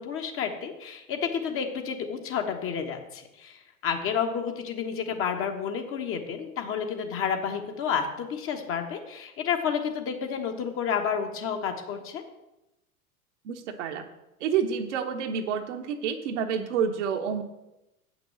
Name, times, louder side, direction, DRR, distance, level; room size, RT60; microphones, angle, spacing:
voice 1, 0.0-12.2, left 7 dB, 30° left, 4 dB, 1.2 m, -30 dB
voice 2, 13.4-14.1 14.4-17.4, right 7 dB, 50° right, 5 dB, 1.2 m, -29 dB
7.9 x 6.1 x 7.7 m, 0.94 s
figure-of-eight pair, 90°, 45 cm